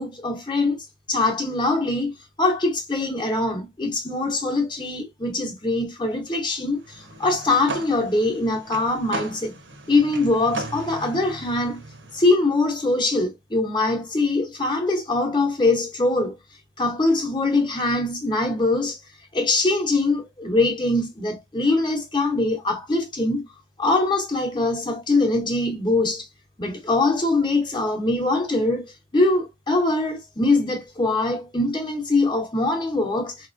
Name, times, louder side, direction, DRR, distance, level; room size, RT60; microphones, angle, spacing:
voice 1, 0.0-9.6 9.9-11.8 12.1-16.4 16.8-19.0 19.3-23.4 23.8-26.3 26.6-33.5, left 2 dB, 25° left, 0.9 m, -23 dB
sound 1, 6.8-12.3, right 2 dB, 70° right, 1.0 m, -36 dB
4.1 x 3.0 x 2.6 m
head